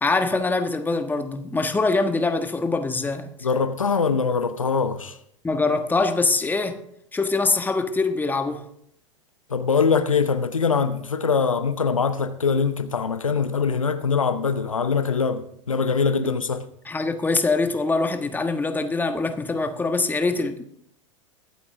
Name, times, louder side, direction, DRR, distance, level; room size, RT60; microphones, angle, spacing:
voice 1, 0.0-3.3 5.4-6.8 7.1-8.6 16.8-20.6, left 3 dB, 10° left, 1.4 m, -23 dB
voice 2, 3.4-5.2 9.5-16.7, left 5 dB, 85° left, 0.8 m, -23 dB
22.0 x 8.5 x 3.6 m
figure-of-eight pair, 85°, 17 cm